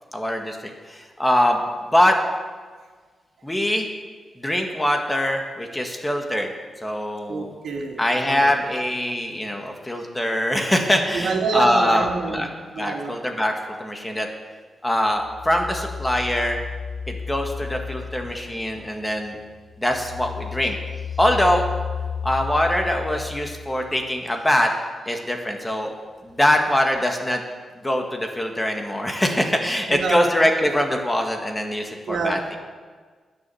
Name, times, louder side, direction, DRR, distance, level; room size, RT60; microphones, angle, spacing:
voice 1, 0.1-0.6 0.9-1.6 1.9-2.2 3.4-3.9 4.4-6.5 6.8-7.5 8.0-12.5 12.8-13.5 13.8-14.3 14.8-16.6 17.1-19.4 19.8-20.8 21.2-21.7 22.2-24.7 25.0-25.9 26.2-27.4 27.8-32.4, left 1 dB, 10° left, 3 dB, 1.6 m, -23 dB
voice 2, 7.3-8.0 8.3-8.5 11.1-12.5 12.8-13.2 29.9-30.2 32.1-32.6, right 4 dB, 80° right, 1 dB, 2.5 m, -26 dB
sound 1, 15.2-19.0 19.4-24.0, left 6 dB, 65° left, 1.0 m, -33 dB
20.5 x 7.3 x 7.0 m, 1.5 s
wide cardioid pair, 120°, 0 cm